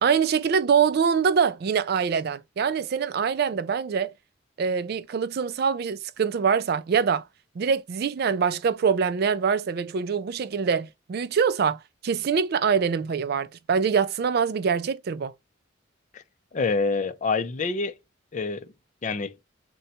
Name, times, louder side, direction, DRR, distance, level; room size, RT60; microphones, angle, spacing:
voice 1, 0.0-4.1 4.6-7.2 7.6-15.3, right 6 dB, 50° right, 0.3 m, -24 dB
voice 2, 16.5-17.9 18.3-18.7 19.0-19.3, left 4 dB, 35° left, 0.5 m, -26 dB
3.9 x 2.2 x 4.1 m
head